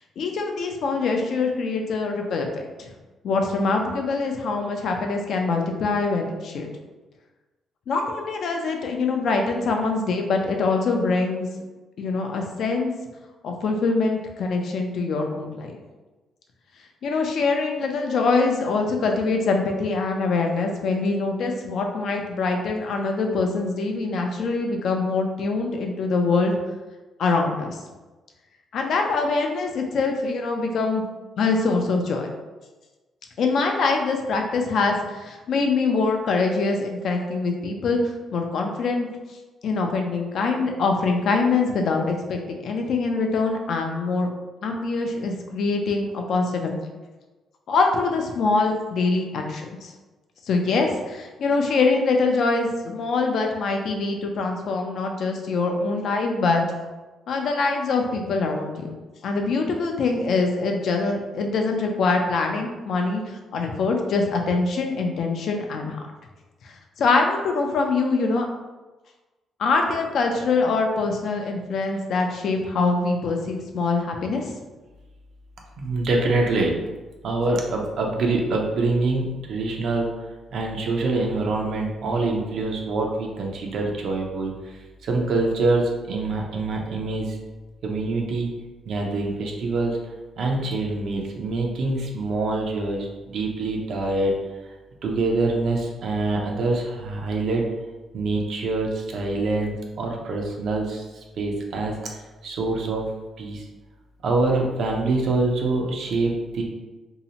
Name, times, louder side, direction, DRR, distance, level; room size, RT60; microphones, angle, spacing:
voice 1, 0.2-2.9 3.2-6.7 7.9-11.5 12.0-12.9 13.4-15.7 17.0-26.5 27.2-27.8 28.7-31.0 31.4-32.3 33.4-38.0 38.3-39.1 39.6-44.3 44.6-46.8 47.7-49.9 50.5-56.6 57.3-58.9 59.2-66.0 66.6-66.7 67.0-68.5 69.6-74.4, left 3 dB, 65° left, 3 dB, 0.4 m, -24 dB
voice 2, 75.8-76.7 77.2-80.1 80.5-84.7 85.0-87.4 87.8-88.5 88.9-90.0 90.4-93.1 93.3-94.3 95.0-97.6 98.1-103.1 103.4-103.6 104.2-106.6, right 2 dB, 65° right, 0 dB, 0.5 m, -25 dB
2.7 x 2.0 x 2.8 m, 1.2 s
cardioid pair, 90°, 0 cm